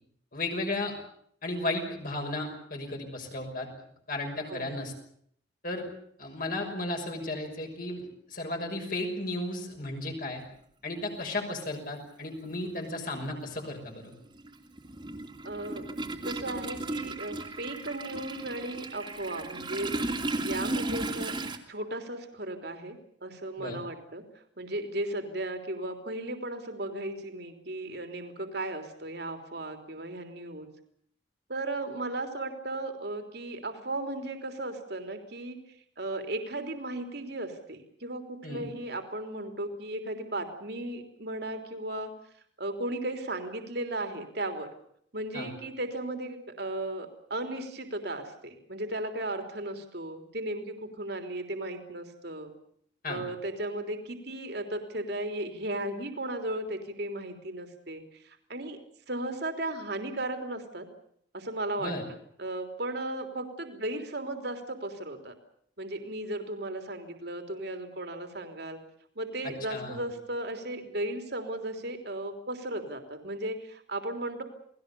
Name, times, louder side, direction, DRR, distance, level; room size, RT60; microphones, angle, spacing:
voice 1, 0.3-1.0 1.4-3.7 4.1-4.9 5.6-5.9 6.2-10.4 10.8-14.1 23.6-23.8 38.4-38.6 45.3-45.5 53.0-53.2 61.8-62.0 69.7-70.0, left 2 dB, 45° left, 2 dB, 6.0 m, -34 dB
Toilet flush, 11.1-11.2 12.5-12.6 12.9-21.6, right 2 dB, 25° right, 2.8 m, -35 dB
voice 2, 15.4-15.9 16.2-19.9 20.4-21.3 21.7-24.2 24.6-30.7 31.5-35.6 36.0-42.1 42.6-44.7 45.1-52.5 53.1-58.8 59.1-60.9 61.3-61.9 62.4-65.3 65.8-68.8 69.1-74.4, right 1 dB, 55° right, 6 dB, 3.4 m, -36 dB
29.0 x 20.0 x 6.9 m, 0.66 s
head